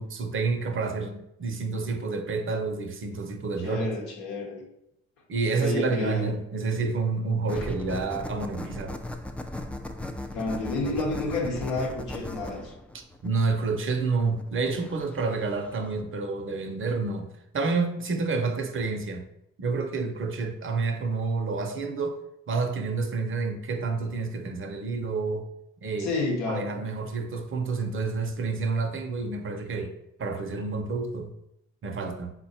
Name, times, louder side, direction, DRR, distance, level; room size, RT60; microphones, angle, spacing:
voice 1, 0.0-3.9 5.3-9.0 13.2-19.2 19.6-22.2 22.5-25.5 25.8-26.1 26.5-29.9 30.2-31.3 31.8-32.3, right 4 dB, 40° right, 6 dB, 0.6 m, -29 dB
voice 2, 3.6-4.6 5.6-6.3 7.5-7.6 10.3-12.7 26.0-26.8, left 3 dB, 75° left, 0 dB, 0.9 m, -30 dB
sound 1, 7.5-16.0, left 1 dB, 5° left, 0.3 m, -38 dB
3.9 x 2.1 x 4.1 m, 0.81 s
hypercardioid pair, 45°, 32 cm